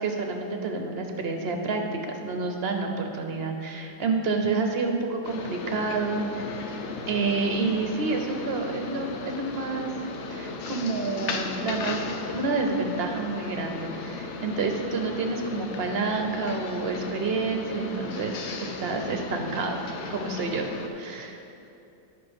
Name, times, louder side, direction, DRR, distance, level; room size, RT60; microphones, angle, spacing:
voice 1, 0.0-6.3 7.1-9.9 10.3-19.8 20.1-20.7 21.0-21.4, right 3 dB, 50° right, 4 dB, 0.8 m, -29 dB
sound 1, 5.2-20.9, left 4 dB, 60° left, 0.8 m, -36 dB
9.8 x 6.0 x 5.2 m, 2.8 s
omnidirectional pair, 1.7 m